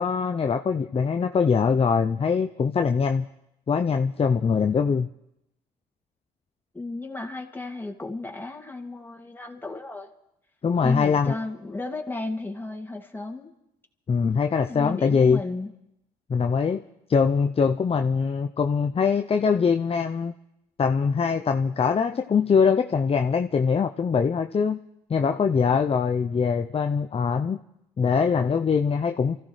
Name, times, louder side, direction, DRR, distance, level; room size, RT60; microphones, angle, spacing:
voice 1, 0.0-3.3 3.7-5.1 10.6-11.3 14.1-15.4 16.3-16.8 17.1-20.3 20.8-24.8 25.1-27.6 28.0-29.4, left 6 dB, 35° left, 6 dB, 0.6 m, -22 dB
voice 2, 6.7-10.1 10.8-13.5 14.7-15.7, left 2 dB, 10° left, 2 dB, 2.4 m, -34 dB
28.0 x 14.5 x 3.2 m, 0.83 s
supercardioid pair, 55°, 18 cm